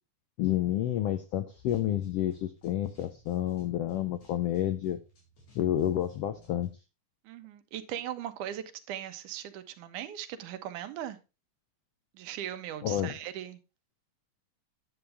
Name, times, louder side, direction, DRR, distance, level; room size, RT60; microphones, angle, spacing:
voice 1, 0.4-5.0 5.5-6.7 12.8-13.1, left 12 dB, 85° left, 1.3 m, -29 dB
sound 1, 1.5-6.7, left 3 dB, 65° left, 5.6 m, -58 dB
voice 2, 7.3-11.2 12.1-13.6, right 11 dB, 85° right, 2.3 m, -39 dB
10.0 x 7.9 x 3.4 m
omnidirectional pair, 3.5 m